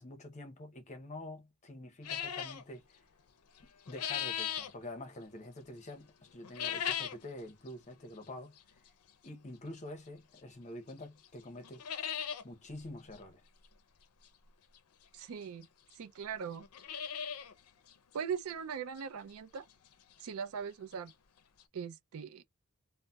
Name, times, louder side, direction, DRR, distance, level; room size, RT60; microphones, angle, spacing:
voice 1, 0.0-3.0 3.9-8.5 9.2-11.8 12.4-13.4, left 1 dB, 30° left, 0.7 m, -47 dB
sound 1, 2.0-2.6 3.6-4.7 6.4-7.3 7.7-7.8 8.6-8.7 10.4-10.5 10.9-11.0 11.3-11.4 11.6-12.4 12.8-12.9 13.1-13.2 14.8-14.9 15.6-15.7 15.9-16.0 16.5-17.5 17.9-18.0 18.5-18.6 19.0-19.1 20.8-20.9 21.1-21.2 21.6-21.7, left 9 dB, 85° left, 0.5 m, -37 dB
voice 2, 15.1-15.7 15.9-16.7 18.1-19.7 20.2-21.1 21.7-22.4, right 7 dB, 70° right, 0.4 m, -40 dB
3.9 x 2.0 x 2.2 m
head